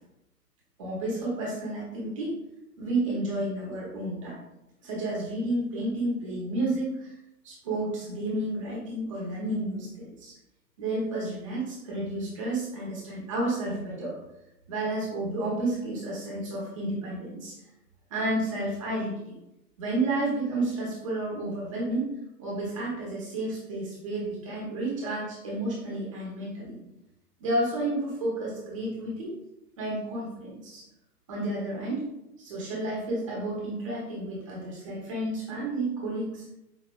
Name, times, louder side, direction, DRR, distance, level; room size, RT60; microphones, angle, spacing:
voice 1, 0.8-2.4 2.8-4.4 4.8-7.1 7.4-10.3 10.8-14.2 14.7-17.6 18.1-19.4 19.8-22.1 22.4-26.8 27.4-29.3 29.8-30.8 31.3-32.1 32.4-36.4, right 2 dB, 20° right, -5 dB, 0.7 m, -31 dB
5.2 x 2.5 x 2.3 m, 0.88 s
figure-of-eight pair, 130°, 49 cm